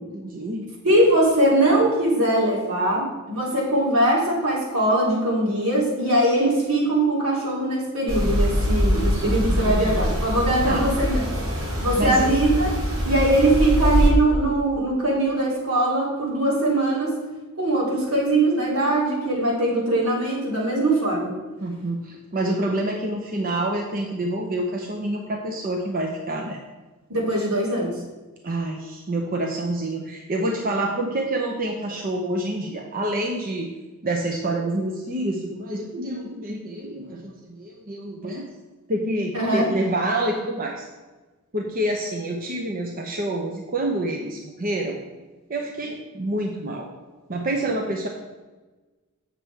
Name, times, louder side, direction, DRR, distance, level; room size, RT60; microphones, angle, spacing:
voice 1, 0.1-0.7 9.5-10.0 10.6-10.9 11.9-12.3 21.6-26.6 28.4-33.7 34.0-38.4 38.9-40.9 41.5-45.0 45.5-46.9 47.3-48.1, right 1 dB, 40° right, 1 dB, 0.8 m, -27 dB
voice 2, 0.8-11.3 11.8-12.7 13.0-17.2 17.6-21.4 27.1-27.9 39.3-39.7, right 1 dB, 80° right, -4 dB, 2.9 m, -21 dB
sound 1, 8.1-14.1, equal, 65° right, 2.9 m, -23 dB
7.9 x 6.8 x 4.6 m, 1.2 s
head